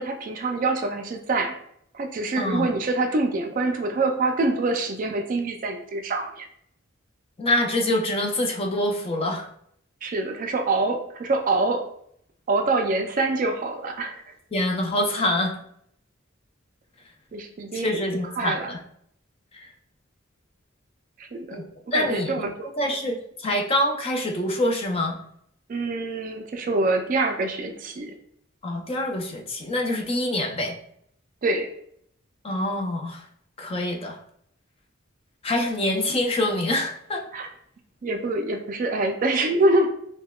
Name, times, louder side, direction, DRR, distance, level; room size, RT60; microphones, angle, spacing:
voice 1, 0.0-1.6 1.9-6.5 10.0-11.9 12.5-14.2 17.3-18.0 18.4-18.7 21.2-21.6 21.9-22.7 25.7-28.1 31.4-31.7 37.3-37.5 38.0-39.9, right 2 dB, 40° right, 5 dB, 0.4 m, -25 dB
voice 2, 2.4-2.7 7.4-9.5 14.5-15.6 17.7-18.8 19.5-19.7 21.5-21.6 21.9-22.5 22.8-25.2 28.6-30.8 32.4-33.2 33.6-34.2 35.4-37.2, left 1 dB, 30° left, 2 dB, 0.4 m, -25 dB
5.4 x 2.2 x 2.2 m, 0.70 s
head